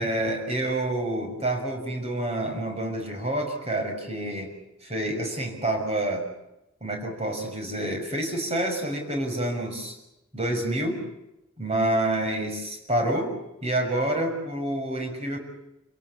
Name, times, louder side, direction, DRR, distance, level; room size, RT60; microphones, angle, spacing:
voice 1, 0.0-4.5 4.8-6.2 6.8-10.0 10.3-11.0 11.6-13.4 13.6-15.4, right 1 dB, 30° right, 4 dB, 6.4 m, -28 dB
29.0 x 18.0 x 8.4 m, 0.91 s
head